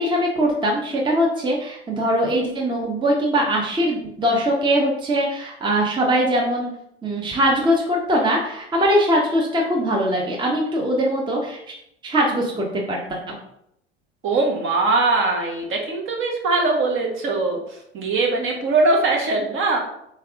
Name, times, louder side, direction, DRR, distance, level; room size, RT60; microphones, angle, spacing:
voice 1, 0.0-6.7 7.0-11.6 12.0-13.4, equal, 15° right, -2 dB, 0.9 m, -21 dB
voice 2, 14.2-19.8, right 3 dB, 35° right, 1 dB, 1.1 m, -21 dB
3.8 x 3.4 x 3.5 m, 0.76 s
hypercardioid pair, 80°, 34 cm